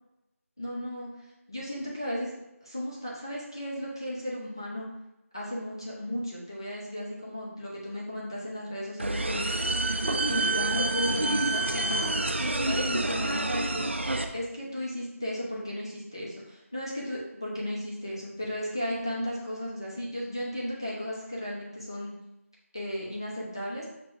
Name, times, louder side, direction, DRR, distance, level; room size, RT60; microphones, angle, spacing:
voice 1, 0.6-1.1 1.5-2.3 2.6-4.9 5.3-9.6 10.3-12.3 12.6-13.8 14.3-22.1 22.7-23.9, equal, 15° left, -6 dB, 0.5 m, -35 dB
sound 1, 9.0-14.2, right 2 dB, 50° right, 0.4 m, -28 dB
6.1 x 2.1 x 3.5 m, 0.92 s
figure-of-eight pair, 175°, 8 cm